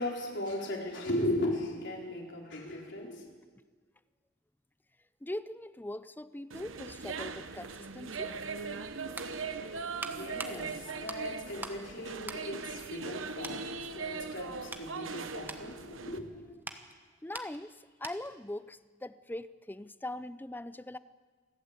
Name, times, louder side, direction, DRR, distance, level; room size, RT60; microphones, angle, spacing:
voice 1, 0.0-3.3 9.7-16.6, left 1 dB, 60° left, 0 dB, 4.2 m, -37 dB
voice 2, 5.2-8.3 17.2-21.0, left 1 dB, 10° left, 15 dB, 0.5 m, -41 dB
sound 1, 6.5-16.2, right 5 dB, 70° right, 1.1 m, -40 dB
sound 2, 9.2-11.9 12.2-13.1 13.4-13.7 14.2-18.4 18.7-18.9, right 2 dB, 10° right, 1.2 m, -45 dB
28.0 x 12.0 x 8.3 m, 1.5 s
head